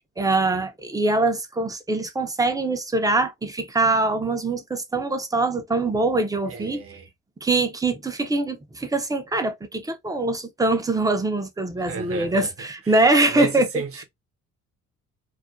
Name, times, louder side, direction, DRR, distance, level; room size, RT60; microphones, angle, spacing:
voice 1, 0.2-6.8 7.4-13.8, right 2 dB, 10° right, 0.5 m, -23 dB
voice 2, 6.5-7.1 11.9-12.5 12.9-14.0, right 5 dB, 50° right, 0.8 m, -33 dB
2.4 x 2.1 x 2.5 m
cardioid pair, 90°, 30 cm